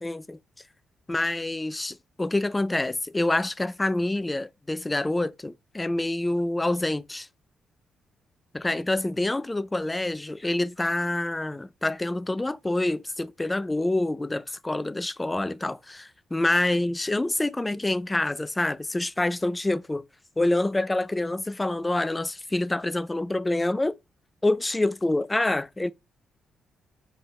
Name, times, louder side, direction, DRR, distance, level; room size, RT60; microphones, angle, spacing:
voice 1, 0.0-0.4 1.1-7.3 8.5-20.0 20.4-24.0 24.4-25.9, left 2 dB, 20° left, 0.3 m, -27 dB
4.0 x 3.5 x 2.3 m
supercardioid pair, 50°, 0 cm